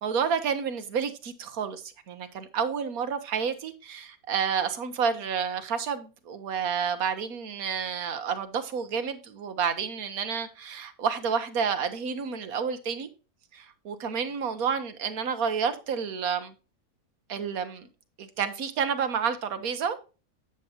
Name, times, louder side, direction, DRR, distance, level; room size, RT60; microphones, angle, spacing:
voice 1, 0.0-13.1 13.5-16.5 17.3-17.9 18.2-20.0, right 6 dB, 65° right, 1.4 m, -30 dB
8.9 x 7.4 x 2.9 m
omnidirectional pair, 1.7 m